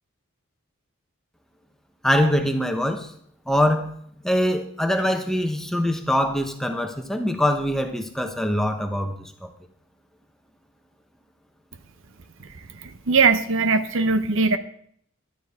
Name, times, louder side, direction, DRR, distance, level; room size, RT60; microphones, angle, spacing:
voice 1, 2.0-3.1 3.5-3.9 4.2-9.1 9.4-9.5, left 1 dB, ahead, 5 dB, 1.0 m, -23 dB
voice 2, 12.7-14.6, right 4 dB, 65° right, 10 dB, 0.8 m, -20 dB
14.0 x 12.0 x 3.6 m, 0.65 s
head